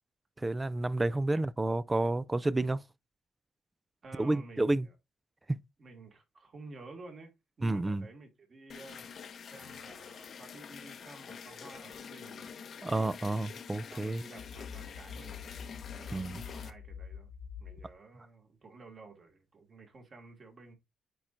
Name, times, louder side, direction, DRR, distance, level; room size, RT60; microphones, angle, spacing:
voice 1, 0.4-2.8 4.2-4.9 5.5-5.6 7.6-8.1 12.8-14.2 16.1-16.4, right 2 dB, 15° right, 0.3 m, -30 dB
voice 2, 4.0-5.0 5.8-9.1 9.5-12.5 13.9-15.5 15.9-17.3 17.6-20.8, right 3 dB, 35° right, 1.9 m, -52 dB
sound 1, 8.7-16.7, left 6 dB, 45° left, 0.7 m, -47 dB
sound 2, 14.4-17.9, left 7 dB, 85° left, 1.3 m, -46 dB
9.0 x 4.3 x 2.5 m
cardioid pair, 145°, 0 cm